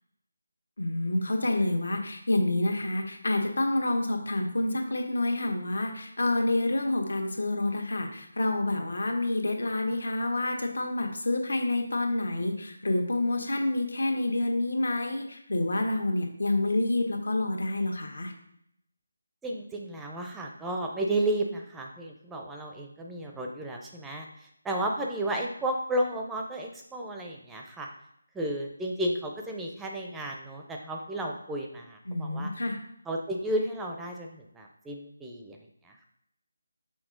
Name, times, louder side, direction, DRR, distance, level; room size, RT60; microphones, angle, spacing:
voice 1, 0.8-18.3 32.1-32.8, left 2 dB, 75° left, 3 dB, 1.4 m, -28 dB
voice 2, 19.4-27.9 28.3-32.5 33.1-35.6 35.8-36.1, right 1 dB, 5° right, 1 dB, 0.5 m, -33 dB
6.2 x 4.3 x 3.8 m, 0.74 s
figure-of-eight pair, 160°, 0 cm